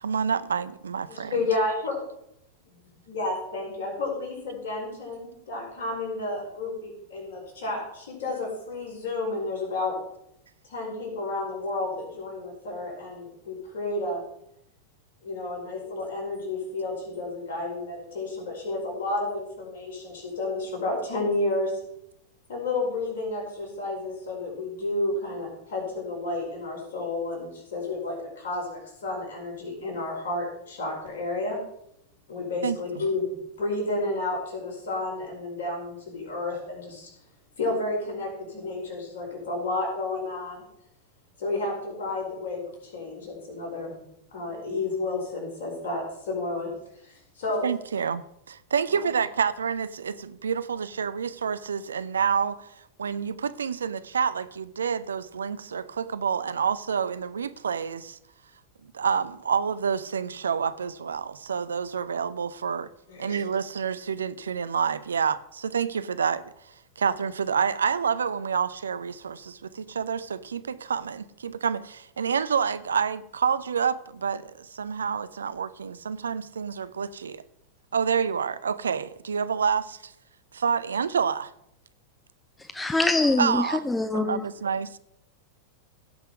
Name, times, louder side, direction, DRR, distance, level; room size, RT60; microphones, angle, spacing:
voice 1, 0.0-1.4 32.6-32.8 47.6-52.7 53.0-58.2 58.9-62.9 63.2-66.4 67.0-77.4 77.9-80.1 80.5-81.5 83.4-83.9 84.1-85.0, right 6 dB, 70° right, 0.5 m, -28 dB
voice 2, 1.1-2.0 2.7-2.8 3.1-10.0 10.7-14.2 15.2-21.7 22.5-31.6 32.3-33.3 33.6-37.1 37.6-40.6 41.4-44.0 44.3-46.7 47.0-47.7 48.9-49.1 63.1-63.4, left 2 dB, 60° left, 5.0 m, -31 dB
voice 3, 82.7-84.4, left 2 dB, 10° left, 0.4 m, -24 dB
16.5 x 5.7 x 4.9 m
figure-of-eight pair, 90°, 0 cm